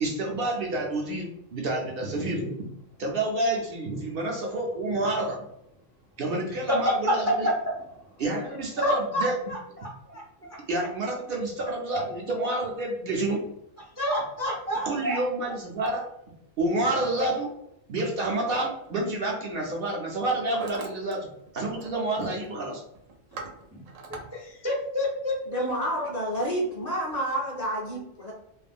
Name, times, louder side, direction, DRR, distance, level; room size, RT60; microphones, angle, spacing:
voice 1, 0.0-2.5 3.0-5.4 6.2-7.5 8.2-9.4 10.7-13.4 14.9-16.1 16.6-17.5 17.9-21.3 21.5-22.8, right 2 dB, 60° right, -1 dB, 0.7 m, -28 dB
voice 2, 6.7-7.5 8.8-9.6 10.4-10.6 14.0-15.6 23.7-23.8 24.1-25.6, equal, 25° right, -3 dB, 0.3 m, -28 dB
Hammer, 18.6-18.9 19.6-19.9 20.2-21.1 21.4-21.9 22.2-22.5 22.9-24.2, right 4 dB, 90° right, 1.0 m, -41 dB
voice 3, 25.5-28.3, right 1 dB, 50° left, -4 dB, 0.5 m, -29 dB
2.4 x 2.1 x 3.4 m, 0.79 s
omnidirectional pair, 1.2 m